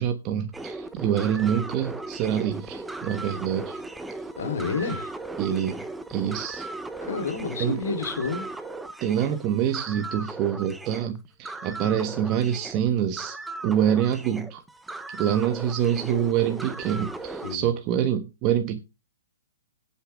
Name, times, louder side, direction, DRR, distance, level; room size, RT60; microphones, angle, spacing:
voice 1, 0.0-3.8 5.4-5.8 6.1-6.6 7.6-7.8 9.0-13.4 13.6-14.6 15.1-18.8, right 9 dB, 25° right, 1.2 m, -26 dB
sound 1, 0.5-17.6, right 2 dB, 5° right, 0.8 m, -37 dB
voice 2, 4.4-5.1 7.0-8.5 17.4-17.7, left 5 dB, 75° left, 3.4 m, -30 dB
18.0 x 8.5 x 3.6 m
hypercardioid pair, 165°, 0 cm